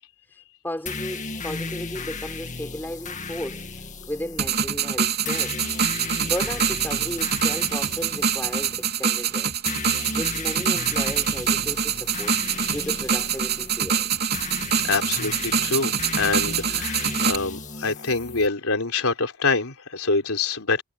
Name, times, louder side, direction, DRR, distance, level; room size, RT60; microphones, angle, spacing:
voice 1, 0.3-5.6 6.2-9.6 10.2-12.3 12.7-14.1, equal, 10° left, 5.9 m, -35 dB
sound 1, 0.9-18.5, left 4 dB, 35° left, 2.0 m, -35 dB
sound 2, 4.4-17.4, right 7 dB, 50° right, 3.5 m, -25 dB
voice 2, 14.8-20.8, left 4 dB, 80° left, 3.7 m, -25 dB
head